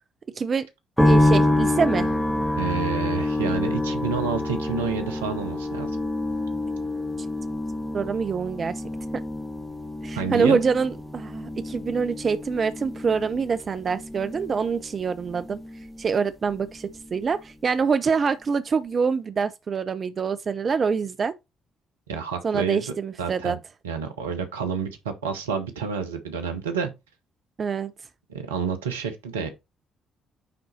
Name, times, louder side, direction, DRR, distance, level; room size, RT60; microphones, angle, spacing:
voice 1, 0.4-0.7 1.0-2.1 7.9-8.8 9.1-9.2 10.0-15.6 16.0-21.3 22.4-23.6 27.6-27.9, right 5 dB, 40° right, 0.5 m, -25 dB
sound 1, 1.0-16.2 16.5-17.3, left 1 dB, 5° left, 2.1 m, -27 dB
voice 2, 2.6-5.9 10.2-10.6 22.1-22.8 23.2-23.6 23.8-26.9 28.3-29.5, right 6 dB, 75° right, 1.0 m, -29 dB
9.4 x 4.0 x 4.2 m
figure-of-eight pair, 45°, 0 cm